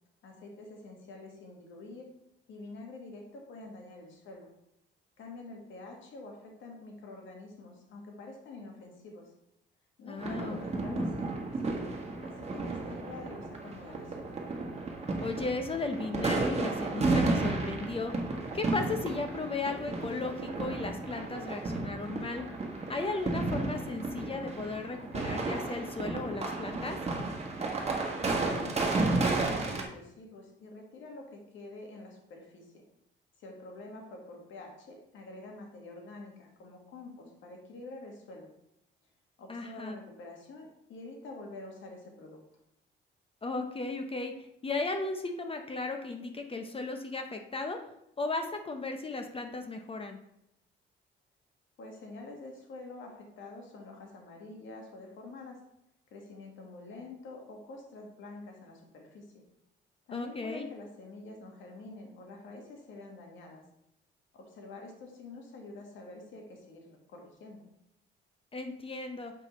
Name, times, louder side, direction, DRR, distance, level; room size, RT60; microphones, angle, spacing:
voice 1, 0.2-2.1 2.5-4.5 5.2-9.3 10.0-11.9 12.2-14.3 28.5-32.8 33.4-38.5 39.4-42.4 51.8-55.6 56.1-59.4 60.1-63.6 64.3-67.6, left 2 dB, 75° left, 1 dB, 1.6 m, -47 dB
voice 2, 10.1-10.6 10.9-11.0 15.2-18.1 18.5-22.5 22.9-27.0 39.5-40.0 43.4-44.3 44.6-47.8 48.2-50.2 60.1-60.7 68.5-69.3, left 3 dB, 30° left, 6 dB, 0.7 m, -35 dB
sound 1, 10.2-29.8, right 3 dB, 30° right, 1.3 m, -33 dB
7.6 x 5.4 x 3.1 m, 0.78 s
cardioid pair, 90°, 20 cm